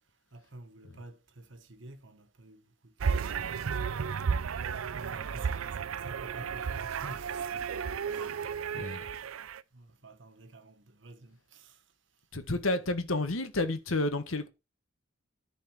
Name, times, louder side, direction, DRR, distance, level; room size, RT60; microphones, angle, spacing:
voice 1, 0.3-4.1 4.6-7.7 8.1-8.5 8.7-9.2 9.7-11.8, right 2 dB, 60° right, 1.3 m, -51 dB
sound 1, 3.0-9.6, right 6 dB, 80° right, 0.5 m, -33 dB
voice 2, 12.3-14.5, left 2 dB, 80° left, 1.5 m, -30 dB
10.5 x 4.3 x 7.2 m
head